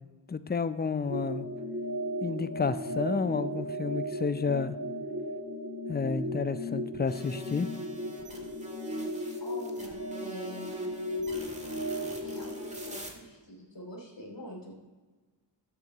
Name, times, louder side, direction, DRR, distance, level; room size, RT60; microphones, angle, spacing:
voice 1, 0.3-1.5 2.2-4.8 5.9-7.7, left 5 dB, 25° left, 13 dB, 0.5 m, -30 dB
sound 1, 1.1-13.0, equal, 35° right, 2.5 m, -36 dB
sound 2, 7.1-13.1, right 2 dB, 15° right, 1.8 m, -46 dB
voice 2, 9.4-10.7 12.2-14.7, equal, 75° left, -1 dB, 2.8 m, -45 dB
13.0 x 8.4 x 3.0 m, 1.3 s
wide cardioid pair, 60°, 44 cm